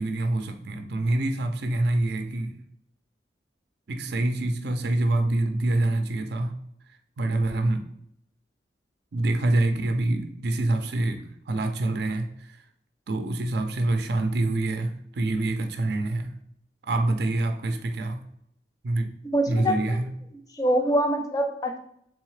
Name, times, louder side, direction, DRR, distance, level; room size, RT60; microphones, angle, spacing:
voice 1, 0.0-2.6 3.9-6.6 7.2-7.9 9.1-12.6 13.1-16.3 16.8-18.2 18.8-19.1 19.5-20.1, right 2 dB, 60° right, 6 dB, 0.5 m, -26 dB
voice 2, 19.3-20.0 20.5-21.8, equal, 20° left, 5 dB, 0.5 m, -24 dB
3.6 x 3.4 x 3.2 m, 0.72 s
head